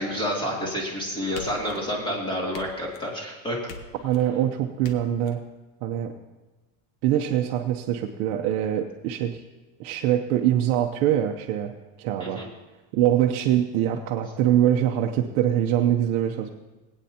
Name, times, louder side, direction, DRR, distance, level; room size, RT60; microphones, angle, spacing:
voice 1, 0.0-3.6 12.2-12.5, equal, 10° left, -3 dB, 2.8 m, -29 dB
sound 1, 1.4-2.1 2.5-3.2 3.7-4.3 4.8-5.3, left 4 dB, 60° left, 1.4 m, -42 dB
voice 2, 4.0-5.4 5.8-6.1 7.0-9.4 9.8-11.7 12.0-12.4 12.9-16.5, right 11 dB, 70° right, 3 dB, 0.9 m, -23 dB
21.0 x 9.1 x 2.9 m, 1.2 s
supercardioid pair, 145°, 41 cm